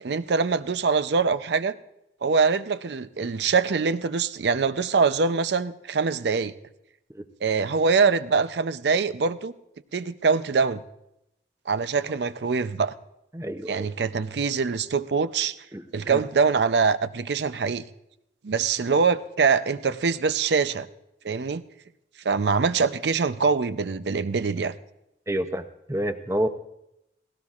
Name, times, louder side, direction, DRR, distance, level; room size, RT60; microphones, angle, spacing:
voice 1, 0.0-1.8 2.2-6.5 7.4-9.5 9.9-10.8 11.7-12.9 13.7-15.5 15.9-17.8 18.4-20.9 21.2-21.6 22.2-24.7, right 5 dB, 80° right, 13 dB, 0.5 m, -24 dB
voice 2, 13.3-13.9 15.7-16.2 25.3-26.5, right 1 dB, 15° right, 9 dB, 0.6 m, -29 dB
18.0 x 17.0 x 2.4 m, 0.85 s
head